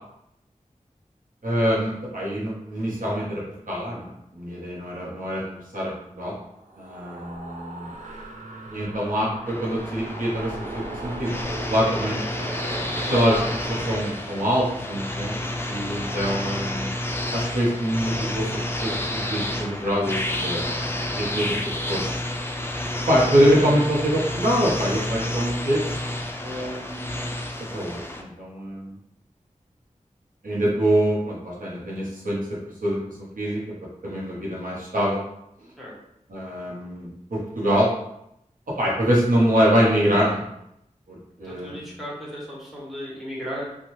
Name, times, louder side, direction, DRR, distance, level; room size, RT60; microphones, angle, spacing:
voice 1, 1.4-6.3 6.8-7.9 8.7-11.3 11.7-12.2 12.9-13.4 13.7-15.3 15.7-16.9 17.3-18.5 18.8-20.7 21.2-21.5 21.9-22.0 23.1-25.8 26.4-27.3 27.7-28.9 30.4-32.4 32.8-33.0 33.4-33.6 34.0-35.2 36.3-37.9 38.8-40.4 41.1-41.8, equal, 80° right, -5 dB, 0.9 m, -24 dB
sound 1, 6.5-14.9, right 2 dB, 65° right, 0.5 m, -38 dB
sound 2, 9.5-28.2, left 1 dB, 15° left, 0.3 m, -30 dB
voice 2, 41.4-43.6, equal, ahead, -6 dB, 1.2 m, -35 dB
2.7 x 2.3 x 3.0 m, 0.79 s
wide cardioid pair, 45°, 14 cm